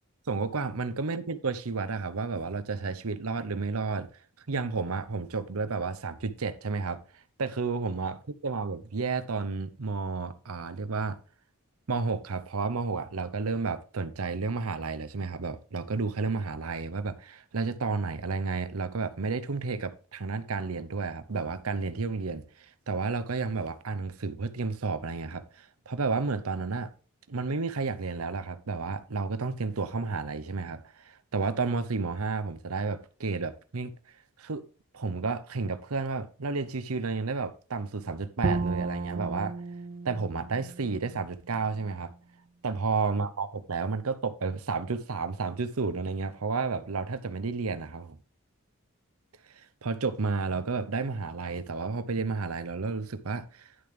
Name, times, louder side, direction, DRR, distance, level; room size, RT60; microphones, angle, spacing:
voice 1, 0.3-4.1 4.5-7.0 7.4-8.2 8.4-11.2 11.9-26.9 27.3-33.9 34.4-34.6 34.9-39.6 40.0-42.1 42.6-48.2 49.5-53.7, right 4 dB, 90° right, 0.8 m, -31 dB
Bowed string instrument, 38.4-41.6, right 3 dB, 35° right, 0.4 m, -33 dB
11.0 x 6.8 x 3.3 m
head